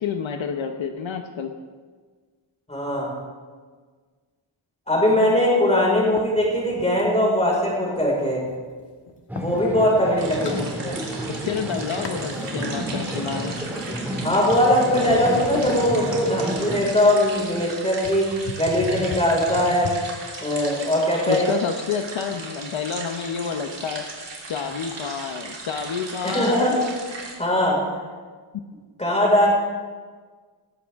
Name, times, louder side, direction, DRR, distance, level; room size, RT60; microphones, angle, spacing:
voice 1, 0.0-1.5 6.1-6.2 10.4-10.7 11.3-13.5 21.3-24.1 24.5-26.8, left 6 dB, 70° left, 5 dB, 1.0 m, -29 dB
voice 2, 2.7-3.1 4.9-8.4 9.3-11.0 14.2-19.9 20.4-21.4 26.2-26.7 27.1-27.8 29.0-29.5, left 1 dB, 15° left, -3 dB, 5.0 m, -21 dB
sound 1, 6.2-7.1 7.6-9.6 10.1-11.3 11.6-12.4 12.9-14.6 15.0-20.0, left 4 dB, 55° left, 1.5 m, -38 dB
sound 2, 9.3-16.8, right 1 dB, 5° right, 1.8 m, -31 dB
sound 3, 10.2-27.3, right 3 dB, 60° right, 3.2 m, -37 dB
18.5 x 15.0 x 3.6 m, 1.5 s
wide cardioid pair, 170°, 48 cm